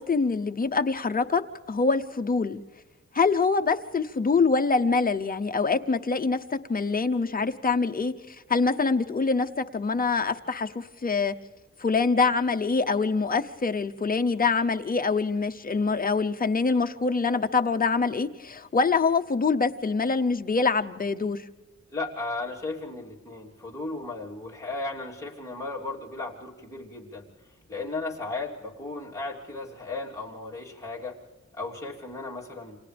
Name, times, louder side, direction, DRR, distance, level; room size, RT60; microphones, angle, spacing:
voice 1, 0.0-2.6 3.1-11.3 11.8-21.4, left 4 dB, 30° left, 7 dB, 0.7 m, -25 dB
voice 2, 21.9-27.2 27.7-31.1 31.6-32.8, left 3 dB, 10° left, -4 dB, 3.2 m, -35 dB
29.5 x 27.0 x 3.4 m, 1.1 s
wide cardioid pair, 140°, 29 cm